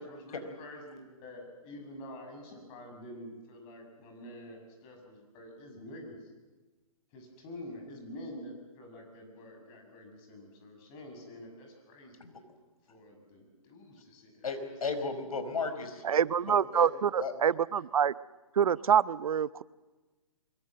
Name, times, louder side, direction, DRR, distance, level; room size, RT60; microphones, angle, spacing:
voice 1, 0.0-6.3 7.1-12.3 12.8-14.8, left 1 dB, 30° left, 6.8 m, -47 dB
voice 2, 14.4-16.0 16.7-16.9 17.2-17.3, left 4 dB, 80° left, 4.9 m, -34 dB
voice 3, 16.0-18.1 18.5-19.6, right 8 dB, 75° right, 0.7 m, -26 dB
24.0 x 23.5 x 7.7 m
hypercardioid pair, 150°, 18 cm